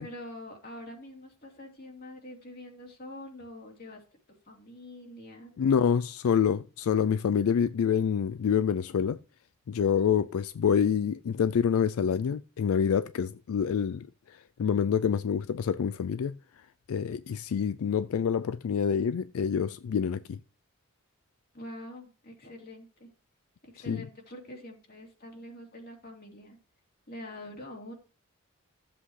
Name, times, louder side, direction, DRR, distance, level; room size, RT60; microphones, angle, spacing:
voice 1, 0.0-4.0 4.4-5.5 21.5-23.1 23.6-26.6 27.1-27.9, left 1 dB, 45° left, 2.9 m, -45 dB
voice 2, 5.6-9.2 9.7-20.4 23.9-24.1, left 7 dB, 75° left, 0.3 m, -27 dB
14.0 x 7.6 x 3.2 m
head